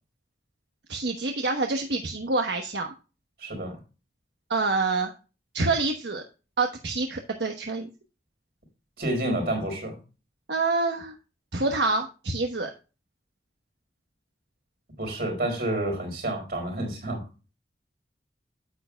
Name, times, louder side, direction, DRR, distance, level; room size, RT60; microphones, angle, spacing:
voice 1, 0.9-2.9 4.5-5.1 5.5-6.2 6.6-7.9 10.5-11.1 11.5-12.7, right 3 dB, 80° right, 4 dB, 1.1 m, -27 dB
voice 2, 3.4-3.8 9.0-10.0 15.0-17.2, right 1 dB, 60° right, 2 dB, 4.4 m, -29 dB
9.6 x 8.9 x 2.3 m, 0.32 s
head